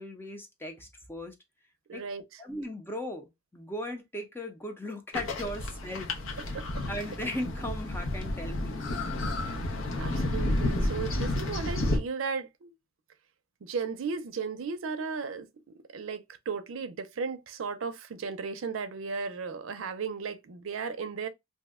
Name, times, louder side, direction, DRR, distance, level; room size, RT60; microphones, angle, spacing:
voice 1, 0.0-1.3 1.9-2.0 2.4-6.6 6.9-8.8, left 1 dB, 10° left, 0.5 m, -38 dB
voice 2, 1.9-2.4 6.5-6.8 10.0-12.7 13.6-21.3, right 5 dB, 80° right, 0.5 m, -35 dB
sound 1, 5.1-12.0, left 1 dB, 80° left, 0.7 m, -31 dB
2.6 x 2.1 x 3.4 m
head